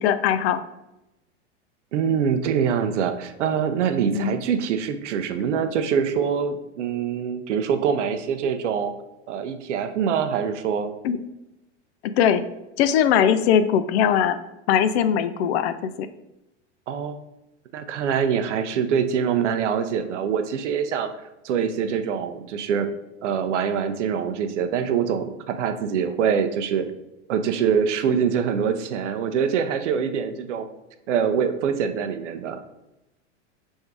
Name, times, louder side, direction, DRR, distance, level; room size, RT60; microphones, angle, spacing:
voice 1, 0.0-0.6 4.1-4.3 11.0-11.2 12.2-12.4 12.8-14.4 14.7-16.1, left 9 dB, 65° left, 12 dB, 0.5 m, -20 dB
voice 2, 1.9-8.9 9.3-10.9 16.9-17.2 17.7-21.1 21.4-22.9 23.2-26.9 27.3-30.7 31.1-32.6, right 7 dB, 85° right, 9 dB, 0.6 m, -24 dB
3.5 x 2.6 x 4.6 m, 0.93 s
hypercardioid pair, 115°, 35 cm